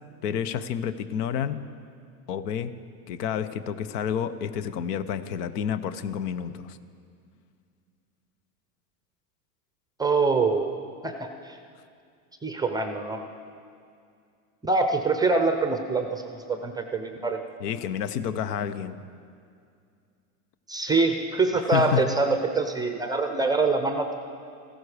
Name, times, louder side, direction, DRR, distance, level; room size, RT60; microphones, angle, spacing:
voice 1, 0.2-1.6 2.3-2.7 3.1-6.8 17.6-19.0 21.7-22.1, left 8 dB, 80° left, 13 dB, 0.9 m, -29 dB
voice 2, 10.0-10.7 11.0-11.6 12.4-13.2 14.6-17.4 20.7-24.1, right 3 dB, 10° right, 6 dB, 0.5 m, -25 dB
15.0 x 12.5 x 4.9 m, 2.3 s
supercardioid pair, 130°, 46 cm